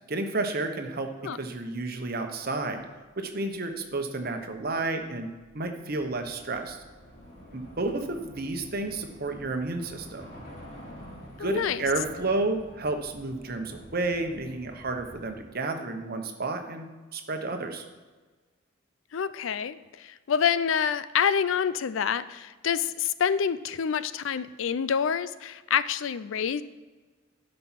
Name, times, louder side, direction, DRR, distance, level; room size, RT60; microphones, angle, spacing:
voice 1, 0.1-2.8 3.2-5.3 5.5-6.8 7.5-10.3 11.4-17.9, right 2 dB, 50° right, 5 dB, 1.1 m, -31 dB
Train / Subway metro underground, 3.0-15.3, equal, 55° left, 3.3 m, -49 dB
voice 2, 11.4-11.8 19.1-26.6, left 7 dB, 80° left, 15 dB, 0.5 m, -27 dB
11.5 x 5.4 x 5.8 m, 1.3 s
head